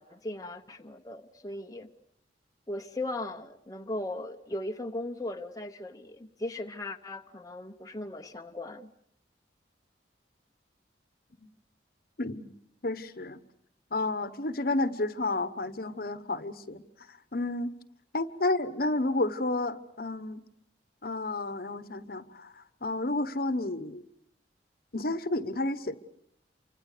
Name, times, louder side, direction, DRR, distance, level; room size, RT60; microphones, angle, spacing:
voice 1, 0.0-1.9 2.7-8.9, left 1 dB, 20° left, 4 dB, 1.0 m, -38 dB
voice 2, 12.2-12.5 12.8-13.4 13.9-16.8 17.1-17.7 18.1-20.4 21.0-24.0 24.9-26.0, left 2 dB, 55° left, 13 dB, 1.2 m, -31 dB
28.5 x 25.0 x 6.8 m, 0.71 s
head